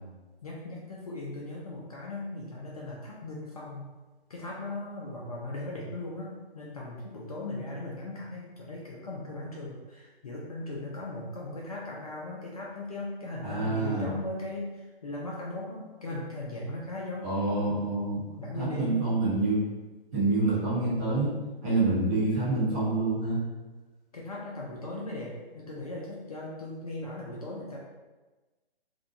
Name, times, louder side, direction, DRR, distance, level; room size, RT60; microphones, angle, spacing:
voice 1, 0.4-3.9 4.3-17.3 18.4-19.1 24.1-27.8, left 2 dB, 40° left, -4 dB, 0.4 m, -38 dB
voice 2, 13.4-14.1 17.2-18.2 18.6-19.6 20.1-21.3 21.6-23.4, right 2 dB, 15° right, -9 dB, 0.7 m, -27 dB
2.5 x 2.2 x 2.5 m, 1.2 s
figure-of-eight pair, 140°, 30 cm